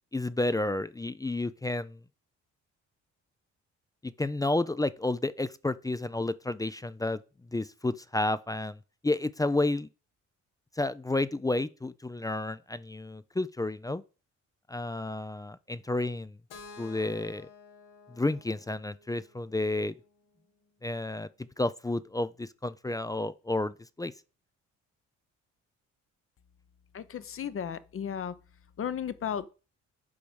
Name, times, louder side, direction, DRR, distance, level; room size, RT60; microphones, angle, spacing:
voice 1, 0.1-2.0 4.0-7.2 7.5-8.8 9.0-9.9 10.8-14.0 14.7-16.4 16.8-17.5 18.1-19.9 20.8-21.3 21.6-24.1, left 2 dB, 10° left, 0.5 m, -31 dB
Keyboard (musical), 16.5-20.4, left 4 dB, 85° left, 1.7 m, -52 dB
voice 2, 26.9-28.4 28.8-29.5, left 8 dB, 45° left, 0.9 m, -34 dB
8.5 x 5.0 x 6.2 m
cardioid pair, 90°, 30 cm